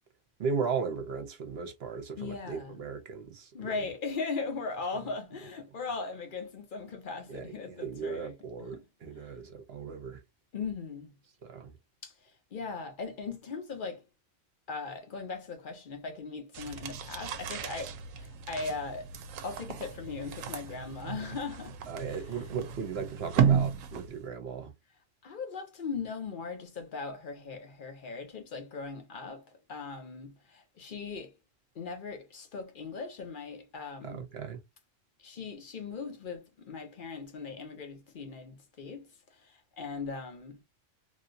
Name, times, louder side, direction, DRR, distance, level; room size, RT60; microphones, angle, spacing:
voice 1, 0.4-3.8 7.3-10.2 11.4-11.7 21.9-24.7 34.0-34.6, right 5 dB, 55° right, 1.0 m, -37 dB
voice 2, 2.2-2.8 3.5-8.8 9.2-9.3 10.5-11.1 12.0-14.0 14.7-19.1 19.4-21.8 22.1-22.2 25.2-31.3 31.7-34.2 35.2-40.6, left 4 dB, 45° left, 0.9 m, -39 dB
sound 1, 16.5-24.3, right 7 dB, 80° right, 1.0 m, -33 dB
3.1 x 2.8 x 2.6 m
omnidirectional pair, 1.3 m